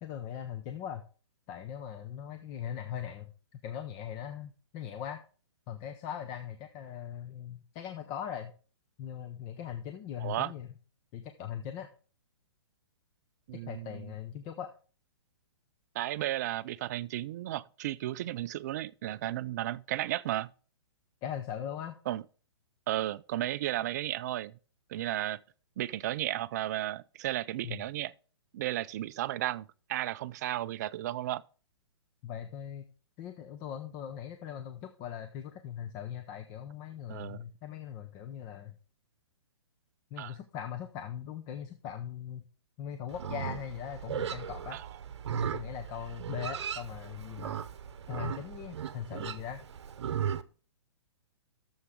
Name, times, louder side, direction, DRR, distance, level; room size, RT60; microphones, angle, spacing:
voice 1, 0.0-1.0 1.5-5.2 5.7-8.5 9.0-10.7 11.1-11.9 13.5-14.7 21.2-21.9 27.6-27.8 32.2-32.9 33.2-38.7 40.1-42.4 42.8-44.8 45.3-47.7 48.1-49.7, left 9 dB, 25° left, 0.6 m, -40 dB
voice 2, 10.2-10.5 13.5-14.1 15.9-20.5 22.1-22.2 22.9-24.5 24.9-25.4 25.8-28.1 28.5-31.4 37.1-37.4 40.2-40.4 44.7-44.9, right 14 dB, 35° right, 0.4 m, -34 dB
Livestock farm animals working animals, 43.1-50.4, right 8 dB, 65° right, 0.8 m, -37 dB
13.0 x 7.1 x 3.7 m
hypercardioid pair, 150°, 15 cm